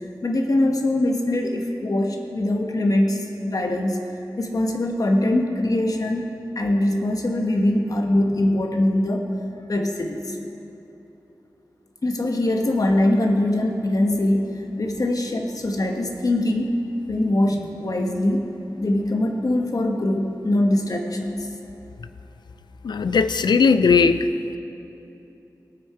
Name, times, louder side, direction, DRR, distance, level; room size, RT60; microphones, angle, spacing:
voice 1, 0.2-4.0 4.4-6.3 6.5-9.3 9.7-10.4 12.0-16.7 17.1-18.5 18.8-21.5, left 1 dB, 55° left, 3 dB, 1.2 m, -22 dB
voice 2, 22.8-24.3, left 5 dB, 85° left, 11 dB, 0.4 m, -18 dB
18.0 x 6.2 x 4.7 m, 2.8 s
wide cardioid pair, 75°, 7 cm